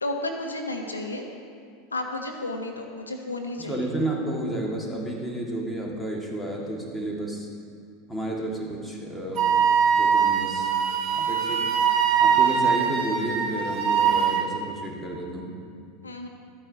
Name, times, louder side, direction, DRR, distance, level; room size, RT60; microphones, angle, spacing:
voice 1, 0.0-1.2 1.9-3.8 16.0-16.3, left 2 dB, 90° left, 4 dB, 0.7 m, -32 dB
voice 2, 3.6-7.5 8.1-9.6 10.0-10.7 11.2-11.6 12.2-15.5, right 1 dB, 5° left, -2 dB, 1.8 m, -31 dB
Wind instrument woodwind instrument, 9.4-14.5, right 7 dB, 45° right, 1.2 m, -22 dB
13.0 x 8.7 x 2.8 m, 2.3 s
figure-of-eight pair, 85°, 0 cm